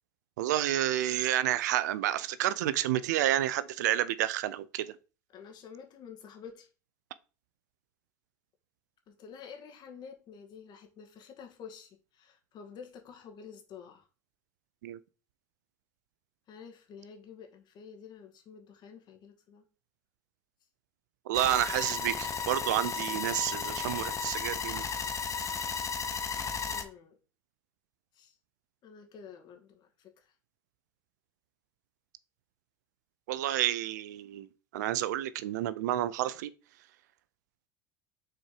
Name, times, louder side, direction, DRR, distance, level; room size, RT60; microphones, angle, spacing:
voice 1, 0.4-4.9 14.8-15.0 21.3-24.8 33.3-34.5 34.7-36.5, right 13 dB, 85° right, 0.5 m, -30 dB
voice 2, 5.3-6.7 9.1-14.1 16.5-19.6 26.7-27.2 28.1-28.4 28.8-30.3, left 6 dB, 50° left, 2.1 m, -49 dB
sound 1, 21.3-26.8, left 5 dB, 35° left, 1.1 m, -34 dB
6.4 x 4.4 x 4.9 m
hypercardioid pair, 85°, 9 cm